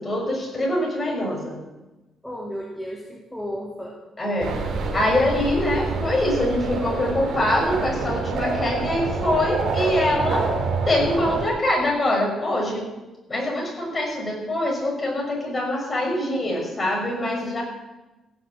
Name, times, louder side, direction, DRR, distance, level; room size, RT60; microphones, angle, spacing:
voice 1, 0.0-1.6 4.2-4.5 4.9-10.5 10.8-12.9 13.3-17.6, left 1 dB, 30° left, -1 dB, 6.2 m, -24 dB
voice 2, 2.2-4.0, equal, 5° left, -2 dB, 2.3 m, -33 dB
sound 1, 4.4-11.5, right 3 dB, 70° right, 3.3 m, -27 dB
16.0 x 7.8 x 7.7 m, 1.1 s
cardioid pair, 90°, 0 cm